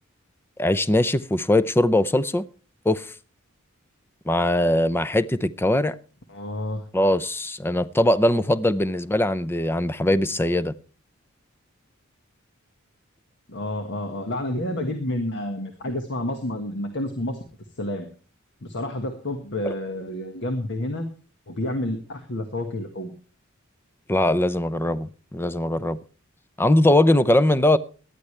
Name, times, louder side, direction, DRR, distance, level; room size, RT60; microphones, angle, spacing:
voice 1, 0.6-2.5 2.9-3.1 4.3-6.0 6.9-10.7 19.6-19.7 24.1-26.0 26.6-27.8, left 1 dB, 10° left, 0.5 m, -21 dB
voice 2, 6.3-6.8 13.5-17.4 17.8-18.1 18.6-21.1 21.5-23.1, left 1 dB, 60° left, 1.6 m, -29 dB
18.5 x 12.0 x 3.3 m
head